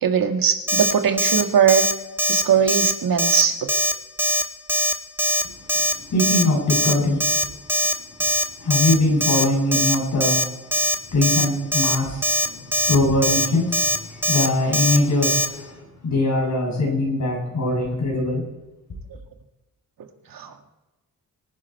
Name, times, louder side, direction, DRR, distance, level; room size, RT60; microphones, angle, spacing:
voice 1, 0.0-1.9 2.3-3.6 20.3-20.7, right 7 dB, 75° right, 5 dB, 1.9 m, -20 dB
Alarm, 0.7-0.9 1.2-1.4 1.7-1.9 2.2-2.4 2.7-2.9 3.2-3.4 3.7-3.9 4.2-4.4 4.7-4.9 5.2-5.4 5.7-5.9 6.2-6.4 6.7-6.9 7.2-7.4 7.7-7.9 8.2-8.4 8.7-8.9 9.2-9.4 9.7-9.9 10.2-10.4 10.7-10.9 11.2-11.4 11.7-12.0 12.2-12.5 12.7-13.0 13.2-13.5 13.7-14.0 14.2-14.5 14.7-15.0 15.2-15.5, equal, 5° right, 1.5 m, -21 dB
voice 2, 5.9-7.3 8.6-10.5 11.1-18.5, left 2 dB, 55° left, -1 dB, 7.3 m, -22 dB
25.0 x 10.5 x 4.6 m, 1.1 s
wide cardioid pair, 165°, 35 cm